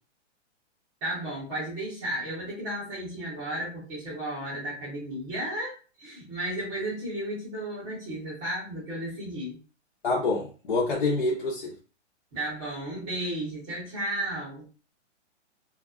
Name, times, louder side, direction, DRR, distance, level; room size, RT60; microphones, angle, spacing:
voice 1, 1.0-9.6 12.3-14.7, right 1 dB, 10° right, -9 dB, 0.7 m, -34 dB
voice 2, 10.0-11.7, left 3 dB, 45° left, -5 dB, 0.7 m, -26 dB
2.5 x 2.3 x 2.3 m, 0.35 s
hypercardioid pair, 170°, 37 cm